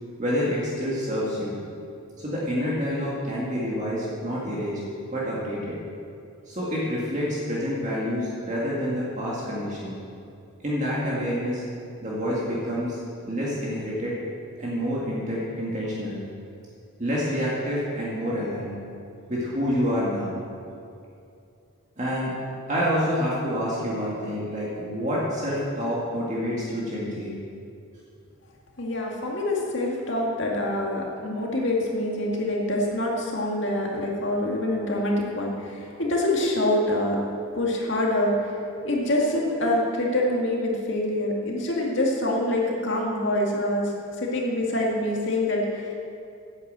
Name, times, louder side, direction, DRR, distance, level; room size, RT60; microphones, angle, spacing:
voice 1, 0.2-1.6 2.2-4.8 5.1-5.8 6.5-10.0 10.6-11.6 12.0-13.0 13.3-14.1 14.6-16.2 17.0-18.7 19.3-20.3 22.0-22.3 22.7-27.3, equal, 35° right, -6 dB, 1.9 m, -27 dB
voice 2, 28.8-37.2 37.5-38.5 38.8-43.9 44.2-45.9, left 1 dB, 55° left, -2 dB, 2.2 m, -25 dB
9.7 x 8.5 x 7.6 m, 2.5 s
head